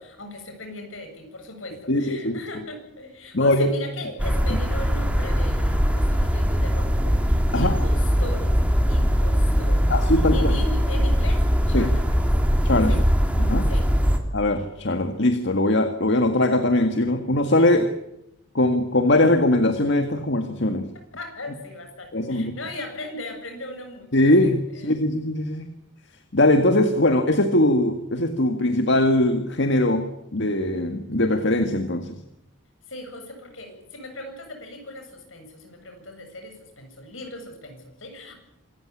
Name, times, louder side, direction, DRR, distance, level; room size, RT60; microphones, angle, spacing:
voice 1, 0.0-8.6 8.8-9.9 10.3-12.3 12.9-13.0 13.7-13.9 20.9-25.3 32.9-38.3, left 2 dB, 80° left, 5 dB, 8.0 m, -38 dB
voice 2, 1.9-2.4 3.3-3.7 7.5-7.7 9.9-10.5 11.7-11.9 12.6-12.9 13.4-13.7 14.3-17.9 18.5-20.9 22.1-22.6 24.1-25.7 26.3-32.2, left 1 dB, 65° left, 7 dB, 1.9 m, -21 dB
sound 1, 4.2-14.2, equal, 5° right, 3.1 m, -21 dB
26.5 x 15.0 x 10.0 m, 0.83 s
head